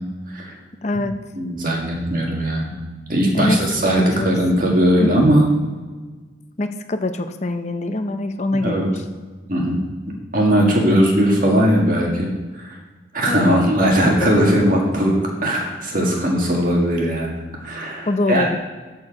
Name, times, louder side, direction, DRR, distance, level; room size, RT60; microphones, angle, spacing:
voice 1, 0.8-1.1 3.3-4.3 5.0-5.3 6.6-9.0 13.3-14.3 18.1-18.6, left 2 dB, 35° left, 8 dB, 0.6 m, -24 dB
voice 2, 1.4-2.7 3.1-5.4 8.5-9.0 9.5-9.8 10.3-12.8 13.1-18.5, equal, 45° right, -1 dB, 1.9 m, -19 dB
13.0 x 4.5 x 4.9 m, 1.3 s
head